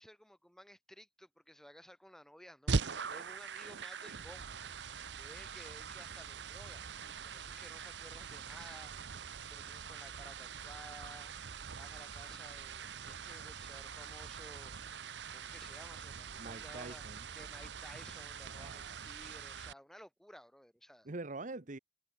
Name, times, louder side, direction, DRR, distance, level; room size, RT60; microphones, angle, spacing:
voice 1, 0.0-17.0 17.3-21.1, equal, 5° left, 4.8 m, -56 dB
sound 1, 2.7-19.7, right 5 dB, 70° right, 0.8 m, -43 dB
voice 2, 16.4-17.2 18.6-19.0 21.0-21.8, right 2 dB, 45° right, 1.1 m, -45 dB
head